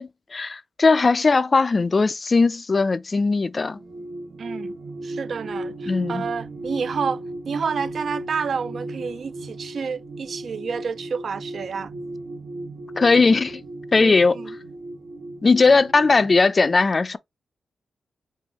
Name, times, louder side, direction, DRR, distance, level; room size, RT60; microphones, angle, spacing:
voice 1, 0.0-3.8 5.9-6.3 13.0-13.6 13.9-14.4 15.4-17.2, left 4 dB, 30° left, 0.4 m, -18 dB
sound 1, 3.6-16.4, right 2 dB, 90° right, 1.2 m, -35 dB
voice 2, 4.4-4.7 5.0-11.9 14.0-14.5, right 6 dB, 55° right, 0.4 m, -29 dB
4.6 x 2.7 x 4.0 m
wide cardioid pair, 145°, 0 cm